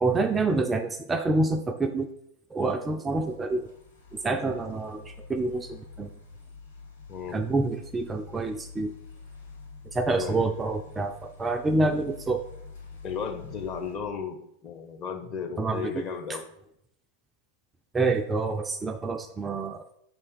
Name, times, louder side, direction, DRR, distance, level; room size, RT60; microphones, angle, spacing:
voice 1, 0.0-2.1 2.5-3.7 4.1-6.1 7.3-8.9 9.9-12.4 15.6-15.9 17.9-19.9, right 3 dB, 15° right, 6 dB, 0.3 m, -27 dB
sound 1, 3.2-14.0, left 4 dB, 75° left, 1.3 m, -47 dB
voice 2, 7.1-7.4 10.2-10.5 13.0-16.4, left 6 dB, 30° left, 4 dB, 0.8 m, -35 dB
5.5 x 3.3 x 5.2 m, 0.77 s
figure-of-eight pair, 90°, 0 cm